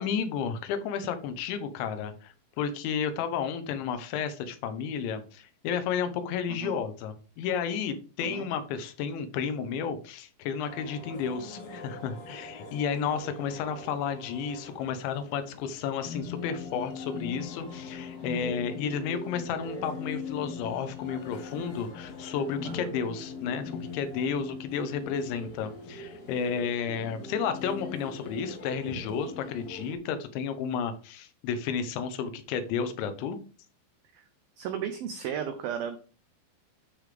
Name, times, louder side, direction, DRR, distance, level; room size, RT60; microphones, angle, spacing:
voice 1, 0.0-33.4, left 7 dB, 80° left, 9 dB, 3.3 m, -32 dB
sound 1, 10.6-29.9, left 4 dB, 65° left, 1.5 m, -41 dB
voice 2, 34.6-36.0, right 8 dB, 85° right, 7 dB, 2.1 m, -34 dB
12.5 x 5.0 x 3.4 m, 0.37 s
omnidirectional pair, 5.3 m